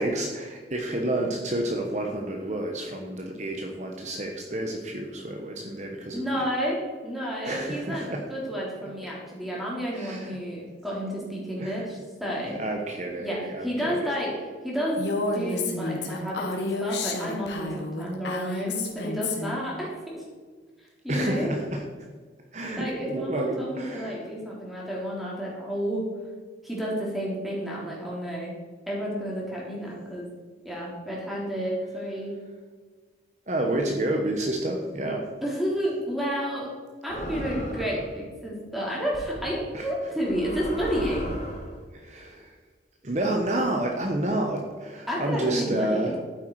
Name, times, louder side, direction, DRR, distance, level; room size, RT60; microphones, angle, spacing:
voice 1, 0.0-6.4 7.4-8.3 9.0-9.1 9.9-10.4 11.6-11.9 12.5-14.0 21.1-21.8 22.5-24.2 33.5-35.3 39.7-39.9 41.9-42.5 43.0-46.2, right 1 dB, 40° right, 2 dB, 1.2 m, -29 dB
voice 2, 6.1-12.6 13.2-14.3 14.6-15.0 15.3-20.2 21.0-21.5 22.8-26.1 26.6-28.5 28.9-30.3 30.6-32.4 35.4-36.7 37.0-41.4 45.1-46.1, equal, ahead, -5 dB, 3.5 m, -31 dB
Female speech woman speaking, 15.0-19.6, left 2 dB, 80° left, 2.0 m, -30 dB
sound 1, 37.1-38.1 39.1-39.4 40.2-41.7, equal, 40° left, 2.8 m, -35 dB
12.0 x 9.4 x 4.8 m, 1.5 s
head